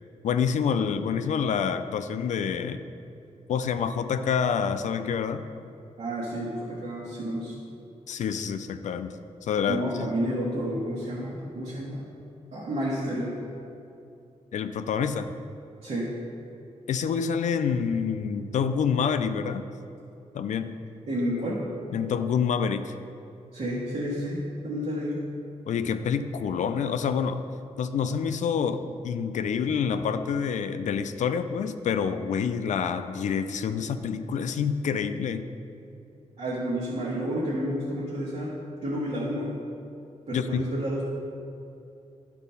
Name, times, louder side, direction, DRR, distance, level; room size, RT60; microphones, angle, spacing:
voice 1, 0.2-2.8 3.5-5.5 8.1-9.1 9.4-9.8 14.5-15.3 16.9-19.7 20.3-20.8 21.9-22.9 25.7-27.5 27.8-35.5 40.3-40.6, left 6 dB, 80° left, 9 dB, 0.4 m, -27 dB
voice 2, 6.0-7.6 9.7-12.0 12.5-13.4 15.8-16.2 21.1-21.6 23.5-25.2 36.4-39.5 40.3-41.0, equal, 65° right, -7 dB, 1.5 m, -30 dB
11.0 x 4.1 x 5.6 m, 2.6 s
wide cardioid pair, 125°, 12 cm